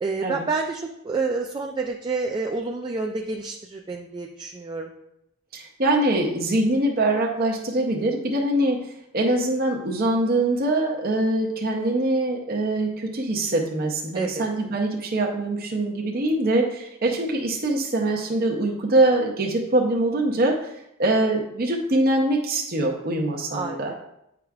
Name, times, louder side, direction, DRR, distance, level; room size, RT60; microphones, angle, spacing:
voice 1, 0.0-4.9 14.1-14.5 23.5-24.0, right 4 dB, 20° right, 1 dB, 0.3 m, -29 dB
voice 2, 5.5-20.7 21.0-23.9, right 1 dB, 45° right, 0 dB, 0.7 m, -23 dB
9.1 x 4.8 x 2.3 m, 0.81 s
head